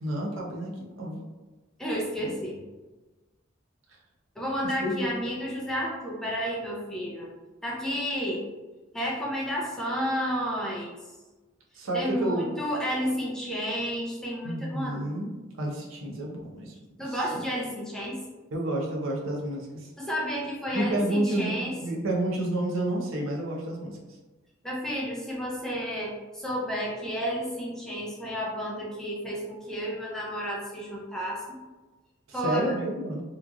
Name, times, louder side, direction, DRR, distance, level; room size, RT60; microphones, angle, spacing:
voice 1, 0.0-1.2 2.2-2.3 4.6-5.1 11.7-12.5 14.4-15.3 15.6-16.8 17.1-17.4 18.5-19.9 20.7-21.5 21.8-24.0 32.3-33.2, right 1 dB, 85° right, -1 dB, 0.6 m, -30 dB
voice 2, 1.8-2.6 4.4-7.3 7.6-8.4 8.9-11.0 11.9-15.1 17.0-18.2 20.0-21.7 24.6-31.6 32.3-32.7, equal, 5° left, -5 dB, 0.5 m, -31 dB
3.0 x 2.4 x 2.3 m, 1.2 s
head